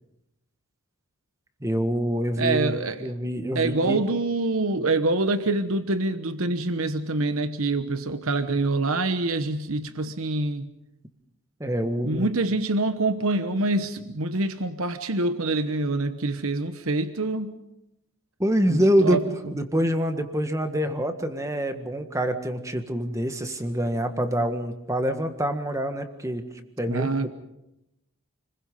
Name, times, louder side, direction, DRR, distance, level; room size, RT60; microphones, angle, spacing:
voice 1, 1.6-2.7 3.0-4.0 11.6-12.3 18.4-19.2 19.5-26.4 26.8-27.3, equal, 15° right, 7 dB, 1.6 m, -25 dB
voice 2, 2.4-3.1 3.5-10.7 12.0-17.6 18.7-19.5 26.9-27.3, right 2 dB, 70° right, 10 dB, 1.1 m, -26 dB
29.5 x 21.5 x 5.5 m, 0.88 s
head